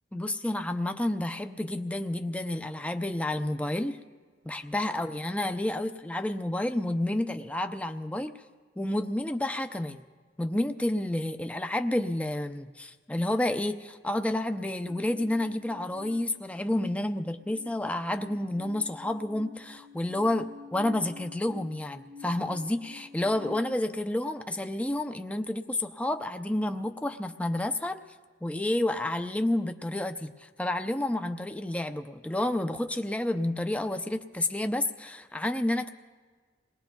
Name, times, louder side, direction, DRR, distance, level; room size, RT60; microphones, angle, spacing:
voice 1, 0.1-4.0 4.4-8.4 8.8-10.0 10.4-28.0 28.4-35.9, left 1 dB, 5° left, 8 dB, 0.5 m, -30 dB
sound 1, 14.9-17.0 17.3-23.7, left 5 dB, 75° right, 0.8 m, -48 dB
28.5 x 19.5 x 2.3 m, 1.5 s
head